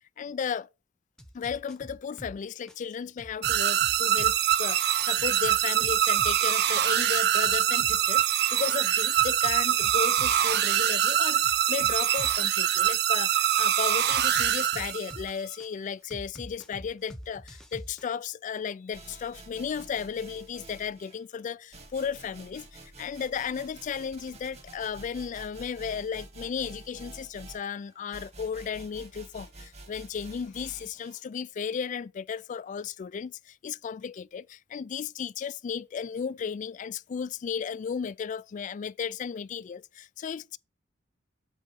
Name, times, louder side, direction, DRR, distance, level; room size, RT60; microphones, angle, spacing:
voice 1, 0.2-0.7 1.3-40.6, left 7 dB, 40° left, 0.3 m, -35 dB
sound 1, 1.2-2.4 2.7-6.4 6.7-10.4 10.7-12.5 14.1-15.7 16.1-18.1, equal, 5° left, 0.9 m, -45 dB
sound 2, 3.4-15.3, right 11 dB, 60° right, 0.6 m, -24 dB
sound 3, 18.9-21.2 21.7-31.2, right 2 dB, 35° right, 1.6 m, -48 dB
8.0 x 3.9 x 6.3 m
head